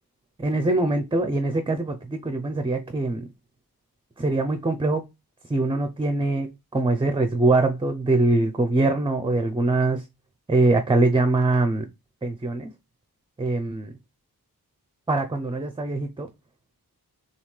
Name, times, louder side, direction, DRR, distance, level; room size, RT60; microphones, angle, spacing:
voice 1, 0.4-3.3 4.2-5.0 5.5-10.0 10.5-11.8 12.2-12.7 13.4-13.9 15.1-16.3, right 2 dB, 15° right, 0.5 m, -23 dB
6.8 x 2.4 x 3.2 m
wide cardioid pair, 115°, 38 cm